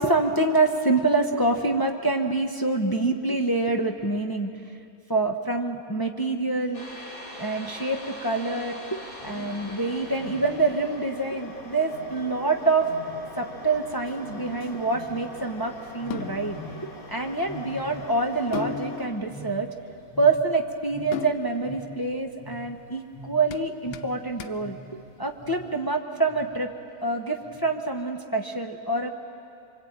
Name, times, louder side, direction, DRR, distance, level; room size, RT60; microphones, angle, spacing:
voice 1, 0.0-4.5 5.1-6.8 7.4-12.9 13.4-16.6 17.1-19.7 20.2-24.8 25.2-26.7 27.0-29.1, right 3 dB, 20° left, 2 dB, 0.6 m, -26 dB
sound 1, 6.7-19.1, left 1 dB, 40° left, 3.2 m, -42 dB
Wild animals, 9.2-10.8 11.9-13.8 14.2-15.4 16.0-17.1 17.3-19.8 20.1-25.0 25.4-25.8 26.3-26.7 27.4-27.9, equal, 10° right, 2.9 m, -44 dB
sound 2, 13.6-25.7, left 9 dB, 90° left, 1.7 m, -41 dB
25.0 x 24.0 x 8.8 m, 2.5 s
omnidirectional pair, 2.3 m